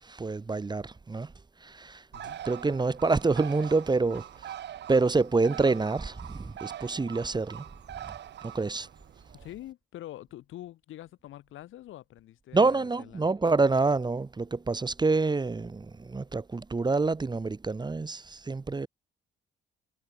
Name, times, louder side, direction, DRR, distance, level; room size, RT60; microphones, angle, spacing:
voice 1, 0.0-1.3 1.6-2.1 2.4-4.5 4.9-7.7 8.0-8.1 8.4-8.9 12.5-18.9, right 3 dB, 20° right, 1.2 m, -27 dB
Bird, 2.1-9.5, right 11 dB, 60° right, 1.0 m, -43 dB
voice 2, 9.3-13.3, left 14 dB, 80° left, 3.1 m, -45 dB
cardioid pair, 90°, 20 cm